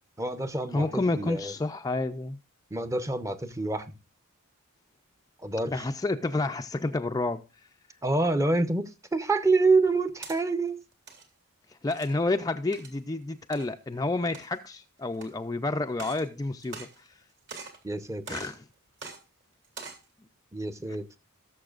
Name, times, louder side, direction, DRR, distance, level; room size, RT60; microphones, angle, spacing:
voice 1, 0.2-1.5 2.7-3.9 5.4-5.8 8.0-10.8 17.8-18.4 20.5-21.2, right 3 dB, 15° right, 0.7 m, -27 dB
voice 2, 0.7-2.4 5.7-7.4 11.7-17.1 18.3-18.6, left 2 dB, 15° left, 0.4 m, -30 dB
sound 1, 9.9-10.4 10.9-11.2 11.9-12.2 12.7-13.0 13.5-13.7 14.2-14.7 15.2-15.3 15.9-16.3 16.6-17.2 17.5-17.8 18.3-18.6 19.0-19.2 19.6-20.0, right 4 dB, 55° right, 2.8 m, -43 dB
18.0 x 7.0 x 2.4 m
head